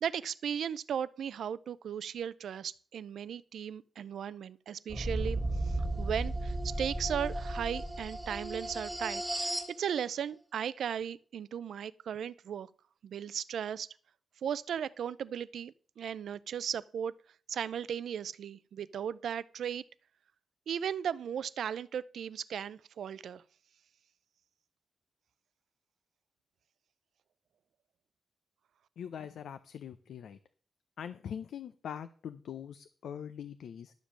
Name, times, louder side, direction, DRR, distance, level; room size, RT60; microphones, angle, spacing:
voice 1, 0.0-12.7 13.0-13.9 14.4-17.1 17.5-19.8 20.7-23.4, right 8 dB, 70° right, 0.4 m, -36 dB
sound 1, 4.9-9.7, right 1 dB, 5° right, 1.6 m, -34 dB
voice 2, 29.0-30.4 31.0-33.9, left 8 dB, 80° left, 0.6 m, -42 dB
11.5 x 5.2 x 7.4 m
wide cardioid pair, 155°, 0 cm